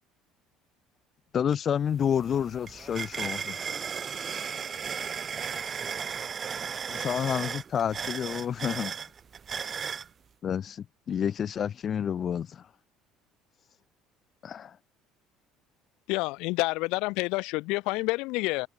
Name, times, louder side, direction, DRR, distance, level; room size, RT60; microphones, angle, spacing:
voice 1, 1.3-3.4 6.9-8.9 10.4-12.7 14.4-14.8, left 8 dB, 45° left, 0.4 m, -29 dB
sound 1, 1.5-1.6 1.9-10.1, right 7 dB, 35° right, 0.9 m, -35 dB
voice 2, 2.7-5.8, left 3 dB, 15° left, 5.1 m, -55 dB
voice 3, 16.1-18.7, left 24 dB, 80° left, 0.8 m, -28 dB
supercardioid pair, 100°, 0 cm